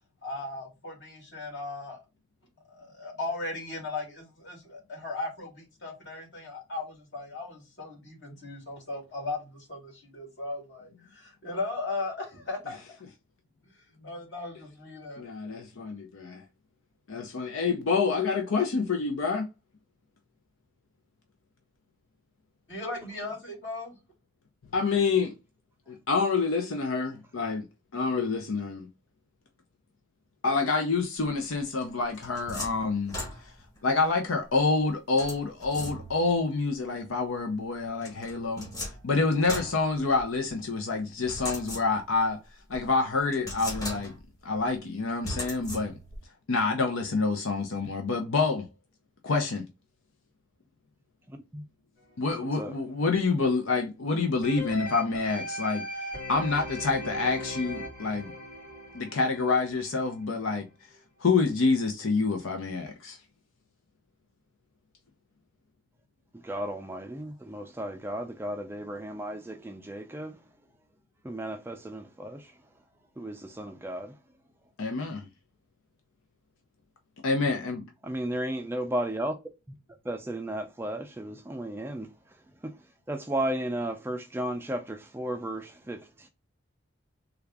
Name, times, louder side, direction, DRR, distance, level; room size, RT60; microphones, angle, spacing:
voice 1, 0.2-2.0 2.7-12.8 14.0-15.2 22.7-24.0, left 3 dB, 60° left, 2.2 m, -37 dB
voice 2, 15.2-16.4 17.1-19.5 24.7-25.3 25.9-27.7 27.9-28.9 30.4-33.1 33.8-38.7 39.0-42.4 42.7-44.1 44.4-46.0 46.5-48.7 49.2-49.7 52.2-55.8 56.3-58.3 58.9-60.7 61.2-63.2 74.8-75.3 77.2-77.8, left 4 dB, 90° left, 0.6 m, -27 dB
sound 1, 31.8-33.8 35.2-36.4 38.0-40.5 41.3-42.3 42.7-42.8 43.3-44.4 45.2-46.2, left 1 dB, 20° left, 1.1 m, -38 dB
sound 2, 54.4-60.4 60.9-61.0, left 1 dB, 40° left, 2.1 m, -38 dB
voice 3, 66.5-70.3 71.3-72.4 73.2-74.1 78.1-79.3 80.1-82.1 83.1-86.0, right 1 dB, 10° right, 0.3 m, -34 dB
3.5 x 2.3 x 3.4 m
head